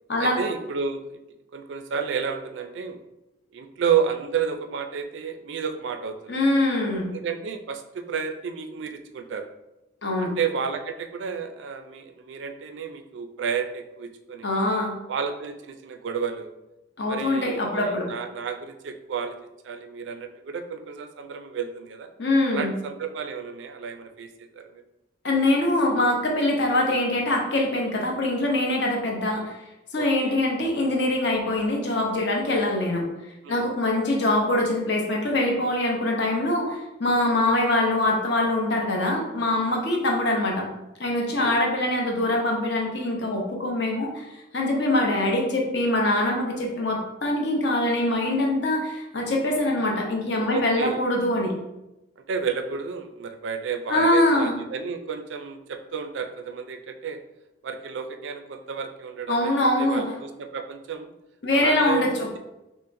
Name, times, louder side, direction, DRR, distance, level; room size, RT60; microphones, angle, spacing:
voice 1, 0.2-1.2 1.5-3.0 3.5-6.4 7.0-9.5 10.2-14.5 15.1-16.5 17.1-19.4 19.6-22.1 22.5-24.8 30.0-30.4 33.4-33.7 41.3-41.6 44.9-45.0 49.5-49.7 50.5-51.0 52.3-57.2 57.6-59.5 59.8-61.1 61.5-62.4, right 6 dB, 70° right, 7 dB, 0.3 m, -31 dB
voice 2, 6.3-7.1 10.0-10.3 14.4-14.9 17.0-18.1 22.2-22.8 25.2-29.6 29.9-33.1 33.5-40.7 41.0-44.3 44.5-51.5 53.9-54.5 59.3-60.0 61.4-62.3, left 1 dB, 60° left, 0 dB, 0.7 m, -23 dB
5.4 x 2.1 x 2.6 m, 0.95 s
head